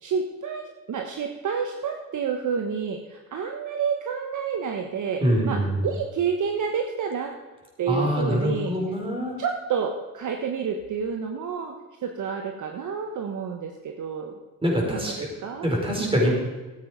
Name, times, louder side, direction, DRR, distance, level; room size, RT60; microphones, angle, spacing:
voice 1, 0.0-5.6 5.8-7.3 7.8-8.7 9.4-11.7 12.0-14.4 14.9-15.7 16.0-16.2, right 6 dB, 50° right, 4 dB, 1.3 m, -29 dB
voice 2, 5.2-5.8 7.9-9.3 14.6-15.3 15.6-16.3, equal, 15° right, -1 dB, 5.1 m, -24 dB
14.0 x 8.8 x 5.2 m, 1.2 s
supercardioid pair, 75°, 38 cm